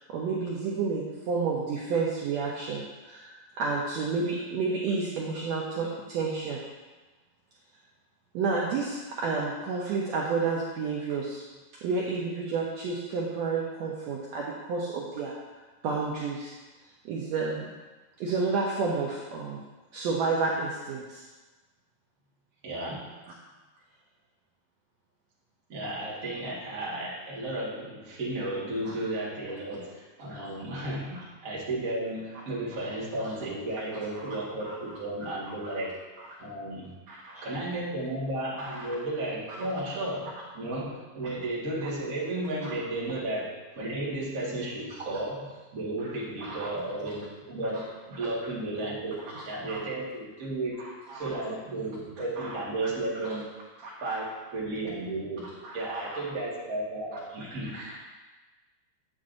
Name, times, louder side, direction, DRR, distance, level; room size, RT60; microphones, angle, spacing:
voice 1, 0.1-6.6 8.3-11.4 11.8-15.3 15.8-16.5 17.0-17.7 18.2-19.6 19.9-21.2 30.3-30.4 32.7-32.8 33.2-33.3 34.1-34.3 34.6-34.8 35.7-35.8 37.1-37.4 38.6-38.9 42.6-42.7 46.4-46.7 47.7-47.8 49.7-49.8 50.8-51.3 52.4-52.6 53.8-54.3 55.6-56.2 57.7-58.0, right 4 dB, 80° right, -3 dB, 1.6 m, -31 dB
voice 2, 22.6-23.1 25.7-36.0 36.4-36.9 37.4-53.6 54.0-58.0, right 2 dB, 40° right, -6 dB, 1.3 m, -34 dB
8.5 x 7.8 x 2.6 m, 1.2 s
omnidirectional pair, 4.0 m